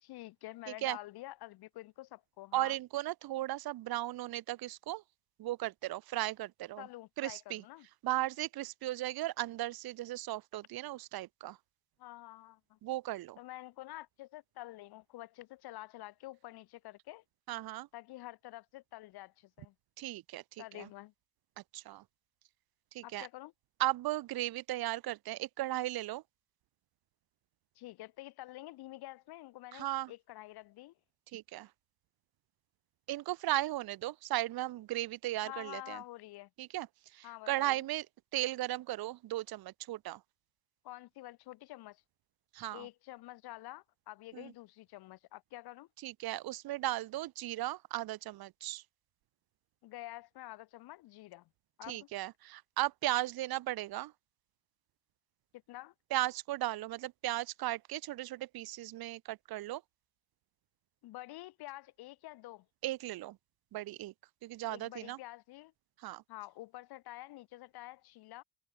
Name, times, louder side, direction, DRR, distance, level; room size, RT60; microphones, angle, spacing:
voice 1, 0.0-2.8 6.8-7.9 12.0-12.8 13.4-17.2 17.9-19.7 20.6-21.1 23.0-23.5 27.7-30.9 35.4-36.5 37.2-37.8 40.8-42.0 42.7-45.9 49.8-51.5 51.8-52.1 55.5-55.9 61.0-62.7 64.7-65.7 66.3-68.4, left 17 dB, 80° left, 1.6 m, -48 dB
voice 2, 2.5-5.0 5.4-6.9 7.2-7.6 8.0-11.6 12.8-13.4 17.5-17.9 20.0-20.9 21.7-22.0 22.9-23.3 23.8-26.2 29.7-30.1 31.3-31.7 33.1-36.0 36.6-36.9 37.1-38.1 38.3-40.2 42.5-42.9 44.3-44.5 46.0-48.8 51.9-54.1 56.1-59.8 62.8-63.4 63.7-64.1 64.4-65.2 66.0-66.2, right 16 dB, 70° right, 1.1 m, -36 dB
cardioid pair, 80°, 38 cm